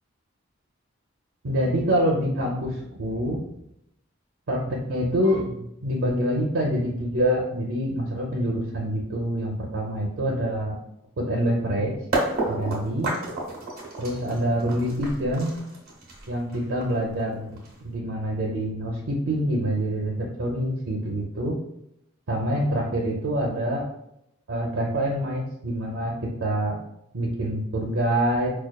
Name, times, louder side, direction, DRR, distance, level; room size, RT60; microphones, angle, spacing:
voice 1, 1.4-3.5 4.5-10.7 11.2-11.9 12.5-13.1 14.0-15.5 16.3-21.6 22.3-23.8 24.5-26.1 26.4-26.8 27.1-28.5, equal, 75° right, -2 dB, 0.6 m, -26 dB
sound 1, 12.1-18.0, right 2 dB, 45° right, 0.9 m, -30 dB
5.1 x 2.3 x 2.2 m, 0.80 s
head